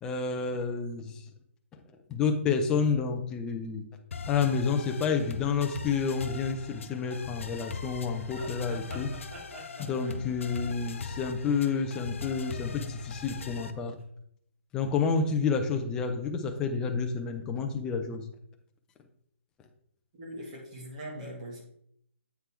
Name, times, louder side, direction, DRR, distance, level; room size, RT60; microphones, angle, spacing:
voice 1, 0.0-1.2 2.1-3.8 4.3-9.1 9.8-13.9 14.7-18.2, left 5 dB, 10° left, 4 dB, 0.5 m, -29 dB
sound 1, 4.1-13.7, left 4 dB, 70° left, 0.8 m, -41 dB
sound 2, 7.0-7.3 7.5-7.7 8.2-11.8 12.1-12.5 13.2-13.7 14.0-14.1, right 1 dB, 65° right, 3.0 m, -47 dB
voice 2, 20.2-21.6, right 1 dB, 30° right, -2 dB, 2.0 m, -41 dB
8.1 x 4.0 x 4.4 m, 0.70 s
hypercardioid pair, 170°, 7 cm